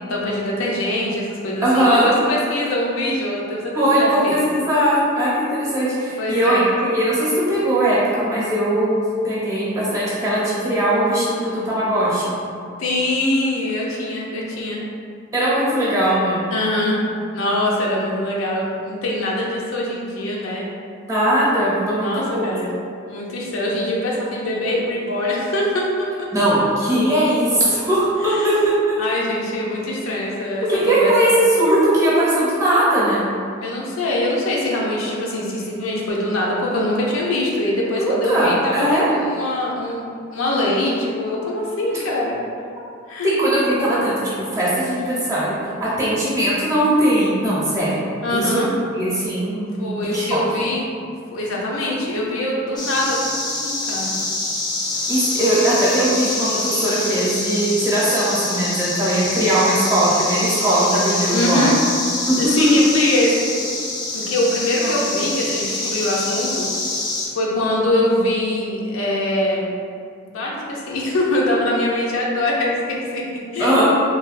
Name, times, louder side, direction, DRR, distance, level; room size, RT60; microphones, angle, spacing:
voice 1, 0.0-4.4 6.2-6.7 12.8-14.8 16.5-17.0 17.3-20.6 22.0-22.7 23.1-26.3 28.2-28.7 29.0-31.3 33.6-40.0 40.3-42.4 43.1-43.4 48.2-48.7 49.8-50.9 51.3-54.1 61.3-61.8 62.3-63.5 64.1-66.6 67.3-69.7 70.2-73.8, left 1 dB, 85° left, -3 dB, 0.5 m, -23 dB
voice 2, 1.6-2.1 3.7-12.3 15.3-16.4 21.0-22.4 26.3-28.1 28.9-29.0 30.7-33.2 38.0-39.1 41.9-42.0 43.2-45.5 45.8-48.0 48.3-48.6 48.9-50.4 55.1-61.7 62.3-62.4 64.8-64.9 73.6-73.8, right 1 dB, 15° right, -9 dB, 0.8 m, -19 dB
sound 1, 52.8-67.3, left 2 dB, 20° left, 0.4 m, -25 dB
3.3 x 2.2 x 2.5 m, 2.3 s
head